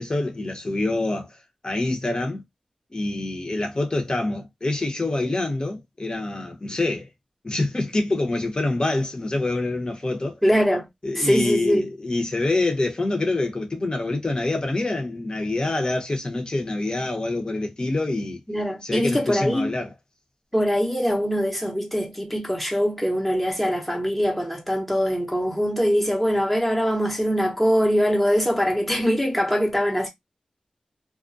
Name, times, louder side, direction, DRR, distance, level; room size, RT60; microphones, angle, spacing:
voice 1, 0.0-1.4 1.6-2.4 2.9-7.1 7.4-10.4 11.0-18.4 18.8-19.9, left 2 dB, 40° left, 0.9 m, -26 dB
voice 2, 10.4-10.9 11.1-11.9 18.5-19.8 20.5-30.1, equal, 5° left, 0.9 m, -22 dB
2.3 x 2.2 x 2.6 m
cardioid pair, 45°, 2 cm